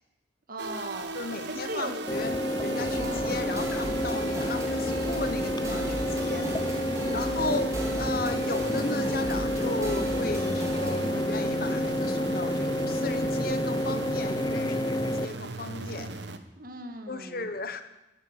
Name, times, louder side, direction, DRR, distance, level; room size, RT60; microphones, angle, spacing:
voice 1, 0.5-2.0 2.9-3.5 6.9-7.6 16.6-17.5, right 1 dB, 50° right, 5 dB, 2.1 m, -39 dB
sound 1, 0.6-16.4, right 2 dB, 65° right, 1.2 m, -37 dB
voice 2, 1.1-6.5 7.1-16.2 17.1-17.8, left 3 dB, 50° left, 10 dB, 1.2 m, -35 dB
sound 2, 2.1-15.3, left 1 dB, 20° left, 0.6 m, -29 dB
sound 3, 2.8-11.1, right 1 dB, 15° right, 2.8 m, -37 dB
13.5 x 12.0 x 8.3 m, 0.95 s
head